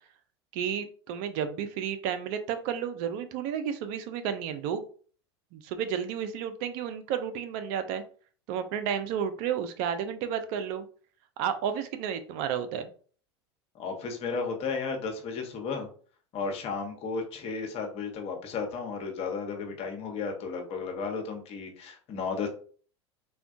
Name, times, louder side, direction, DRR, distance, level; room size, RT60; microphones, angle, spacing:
voice 1, 0.5-4.8 5.5-8.0 8.5-10.9 11.4-12.9, right 8 dB, 55° right, 9 dB, 0.5 m, -32 dB
voice 2, 13.7-15.9 16.3-22.5, left 5 dB, 45° left, 3 dB, 0.9 m, -34 dB
3.4 x 2.2 x 2.5 m, 0.43 s
hypercardioid pair, 85°, 14 cm